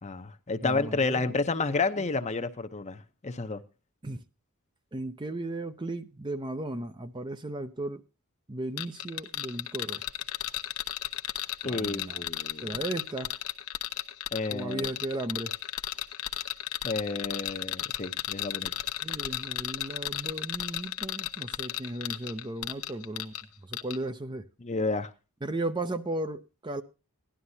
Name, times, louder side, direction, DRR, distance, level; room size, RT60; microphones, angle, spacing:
voice 1, 0.0-3.6 11.6-12.8 14.3-14.9 16.8-18.7 24.6-25.1, left 3 dB, 30° left, 0.7 m, -31 dB
voice 2, 0.6-1.3 2.0-2.1 4.0-4.2 4.9-8.0 8.5-10.0 11.6-12.3 12.6-13.3 14.5-15.5 19.0-23.3 23.6-24.4 25.4-26.8, right 2 dB, 20° right, 0.6 m, -35 dB
sound 1, 8.8-23.4 23.7-24.0, left 13 dB, 70° left, 0.9 m, -34 dB
17.0 x 11.5 x 2.7 m
head